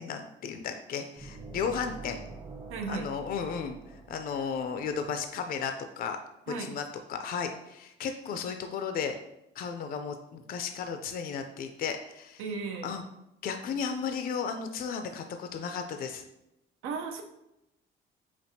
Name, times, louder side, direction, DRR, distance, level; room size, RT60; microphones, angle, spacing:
voice 1, 0.0-2.2 2.9-3.8 4.1-6.2 6.5-9.2 9.6-12.4 12.8-13.0 13.4-16.2, left 6 dB, 45° left, 7 dB, 0.4 m, -34 dB
sound 1, 1.2-5.0, right 3 dB, 20° right, 0.7 m, -46 dB
voice 2, 2.7-3.1 6.5-6.7 12.4-12.9 16.8-17.2, right 4 dB, 85° right, 4 dB, 0.6 m, -35 dB
5.1 x 2.5 x 2.7 m, 0.86 s
cardioid pair, 105°, 21 cm